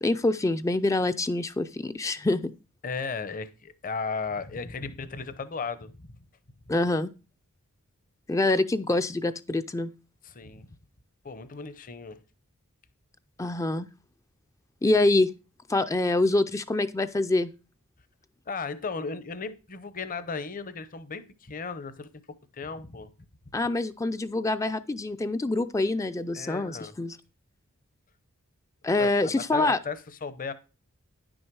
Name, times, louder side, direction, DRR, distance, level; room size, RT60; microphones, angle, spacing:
voice 1, 0.0-2.5 6.7-7.1 8.3-9.9 13.4-13.9 14.8-15.3 15.7-17.5 23.5-27.2 28.8-29.8, left 2 dB, 15° left, 11 dB, 0.4 m, -25 dB
voice 2, 2.8-6.2 10.2-10.7 11.2-12.2 18.5-22.1 22.5-23.1 26.3-26.9 29.0-30.5, left 4 dB, 40° left, 13 dB, 0.7 m, -35 dB
10.5 x 6.3 x 4.6 m, 0.32 s
head